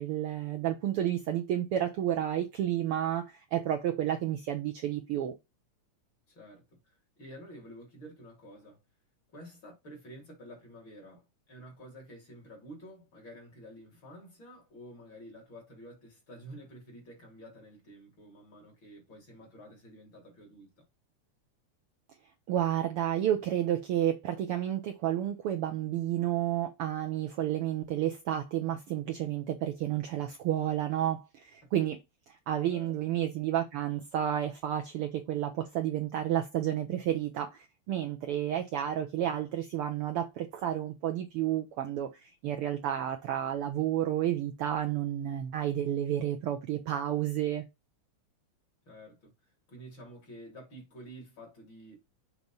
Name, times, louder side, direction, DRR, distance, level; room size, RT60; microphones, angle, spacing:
voice 1, 0.0-5.3 22.5-32.0 32.3-47.6, right 11 dB, 80° right, 1.2 m, -31 dB
voice 2, 6.3-8.8 9.3-20.7 32.7-33.0 48.9-49.3 49.7-52.0, equal, 40° left, 3.3 m, -50 dB
6.7 x 3.1 x 5.3 m
omnidirectional pair, 3.3 m